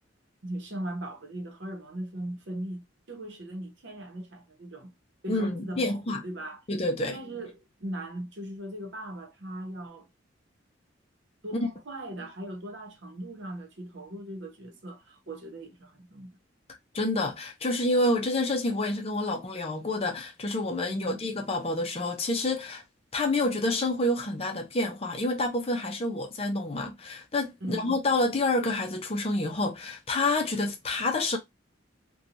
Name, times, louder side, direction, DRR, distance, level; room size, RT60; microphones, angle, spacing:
voice 1, 0.4-4.9 5.2-6.6 7.1-10.1 11.4-16.4 20.9-21.2 27.6-28.0, right 1 dB, 65° right, 0.9 m, -39 dB
voice 2, 5.3-6.2 6.7-7.2 16.9-22.8 23.1-31.4, left 2 dB, 30° left, 0.5 m, -28 dB
3.0 x 2.3 x 2.5 m
head